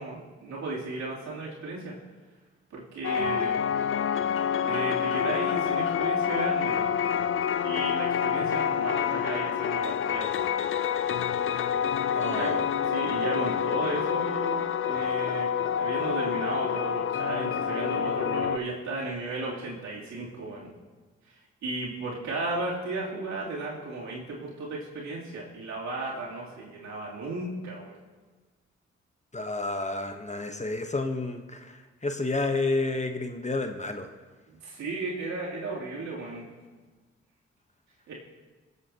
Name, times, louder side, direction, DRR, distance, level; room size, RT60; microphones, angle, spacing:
voice 1, 0.0-1.9 2.7-3.6 4.6-7.0 7.6-10.3 12.2-15.5 15.8-20.7 21.6-28.0 34.5-36.4 38.1-38.2, right 2 dB, 75° right, -5 dB, 3.1 m, -34 dB
sound 1, 3.0-18.6, left 8 dB, 45° left, 0.5 m, -27 dB
voice 2, 12.1-12.6 29.3-34.1, left 2 dB, 25° left, 6 dB, 1.1 m, -30 dB
23.5 x 8.1 x 2.9 m, 1.3 s
supercardioid pair, 45°, 29 cm